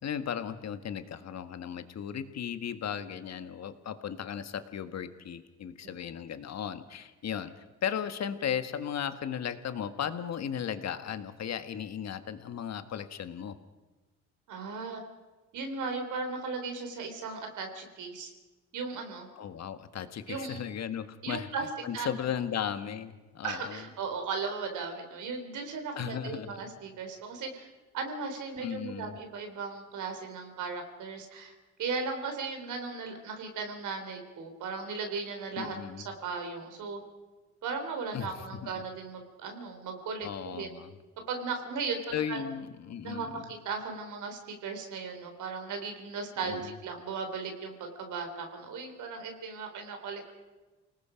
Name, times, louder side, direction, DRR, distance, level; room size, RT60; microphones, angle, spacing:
voice 1, 0.0-7.5 7.8-13.6 19.3-21.5 21.8-23.8 25.9-26.6 28.6-29.2 35.6-36.0 38.1-38.3 38.6-38.7 40.2-40.9 42.1-43.5 46.5-46.7, left 8 dB, 60° left, 10 dB, 1.6 m, -36 dB
voice 2, 14.5-15.0 15.5-18.3 18.7-19.3 20.3-20.6 21.2-21.7 21.9-22.1 23.4-27.7 27.9-35.8 36.2-37.0 37.6-40.7 41.3-42.4 43.0-50.3, right 4 dB, 80° right, 5 dB, 3.8 m, -37 dB
29.0 x 19.0 x 5.2 m, 1.2 s
cardioid pair, 90°, 30 cm